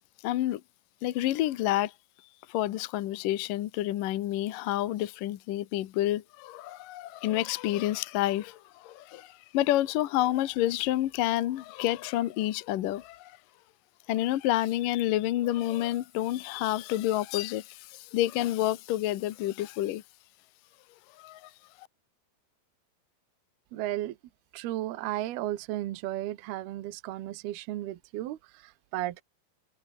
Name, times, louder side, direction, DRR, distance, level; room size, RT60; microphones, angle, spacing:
voice 1, 0.2-0.6 1.0-1.9 2.5-13.4 14.1-20.0 21.2-21.5, left 14 dB, 70° left, 2.3 m, -29 dB
voice 2, 23.7-24.2 24.5-29.2, right 15 dB, 70° right, 3.0 m, -34 dB
omnidirectional pair, 5.0 m